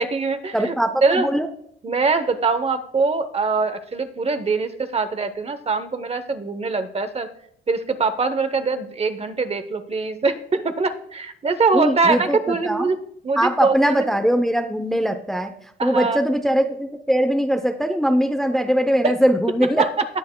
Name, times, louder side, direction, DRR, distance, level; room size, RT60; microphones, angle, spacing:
voice 1, 0.0-0.8 1.0-1.3 1.8-7.3 7.7-13.0 13.2-14.1 15.8-16.2 19.8-20.1, right 4 dB, 30° right, 11 dB, 0.8 m, -23 dB
voice 2, 0.5-1.5 11.7-12.9 13.4-15.5 15.8-19.8, equal, ahead, 6 dB, 0.6 m, -21 dB
19.0 x 6.4 x 2.2 m, 0.68 s
cardioid pair, 90°, 20 cm